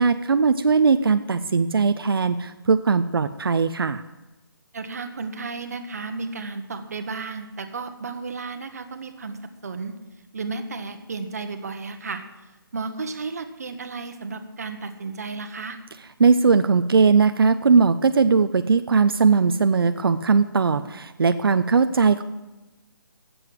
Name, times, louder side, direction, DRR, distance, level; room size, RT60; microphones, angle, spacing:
voice 1, 0.0-4.0 16.2-22.2, right 5 dB, 80° right, 10 dB, 0.6 m, -19 dB
voice 2, 4.7-10.0 10.3-12.2 12.7-15.8, right 4 dB, 45° right, 8 dB, 1.2 m, -33 dB
12.0 x 7.9 x 7.7 m, 1.1 s
hypercardioid pair, 175°, 12 cm